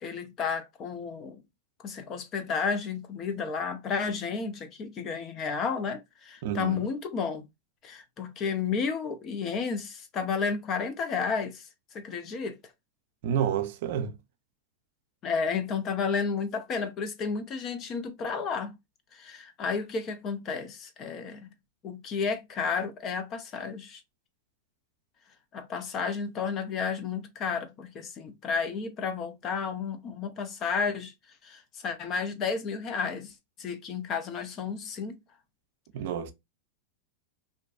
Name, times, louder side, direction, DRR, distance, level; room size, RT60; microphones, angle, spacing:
voice 1, 0.0-1.4 1.8-7.4 7.8-11.7 11.9-12.6 15.2-18.7 19.1-21.5 21.8-24.0 25.5-31.1 31.4-33.3 33.6-35.2, left 5 dB, 35° left, 0.5 m, -32 dB
voice 2, 6.4-6.8 13.2-14.2 35.9-36.3, right 9 dB, 65° right, 0.4 m, -29 dB
2.5 x 2.2 x 2.4 m
hypercardioid pair, 110°, 0 cm